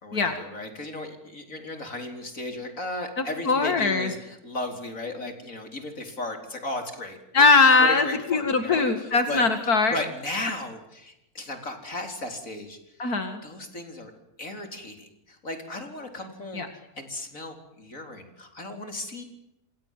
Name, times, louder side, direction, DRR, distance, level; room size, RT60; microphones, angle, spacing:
voice 1, 0.0-7.4 7.8-9.4 9.9-12.8 13.4-14.1 14.4-19.2, left 2 dB, 60° left, 6 dB, 4.8 m, -35 dB
voice 2, 3.2-4.1 7.3-10.0 13.0-13.4 16.5-16.7, left 4 dB, 75° left, 8 dB, 2.7 m, -21 dB
28.0 x 27.0 x 7.6 m, 0.89 s
omnidirectional pair, 1.6 m